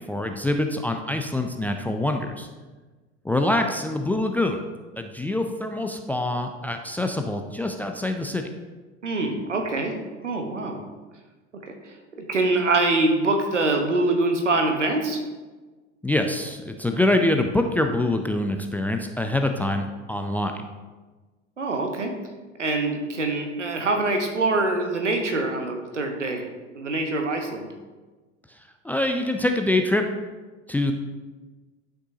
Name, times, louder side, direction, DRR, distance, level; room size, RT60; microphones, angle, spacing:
voice 1, 0.1-2.5 3.2-4.6 5.0-8.5 16.0-20.5 28.8-30.0 30.7-30.9, left 1 dB, 5° left, 5 dB, 0.4 m, -25 dB
voice 2, 9.0-9.9 10.2-10.8 11.5-11.7 12.2-15.2 21.6-22.1 22.6-26.5 26.7-27.7, right 2 dB, 80° right, 4 dB, 1.2 m, -24 dB
11.0 x 6.0 x 2.8 m, 1.3 s
figure-of-eight pair, 75°, 35 cm